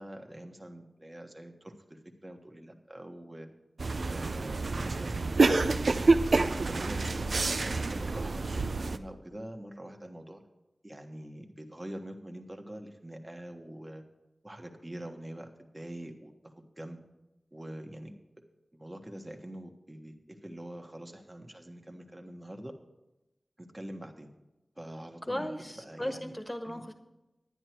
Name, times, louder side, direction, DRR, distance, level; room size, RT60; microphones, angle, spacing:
voice 1, 0.0-3.5 4.1-6.1 6.7-10.4 10.8-14.0 14.4-17.0 17.5-18.1 18.7-22.7 23.6-24.3 24.8-26.3 26.6-26.8, right 1 dB, 25° right, 3 dB, 1.4 m, -44 dB
sound 1, 3.8-9.0, right 3 dB, 80° right, 0.6 m, -27 dB
voice 2, 25.3-26.9, left 1 dB, 15° left, 6 dB, 1.4 m, -36 dB
11.0 x 10.0 x 4.6 m, 0.99 s
wide cardioid pair, 50°, 0 cm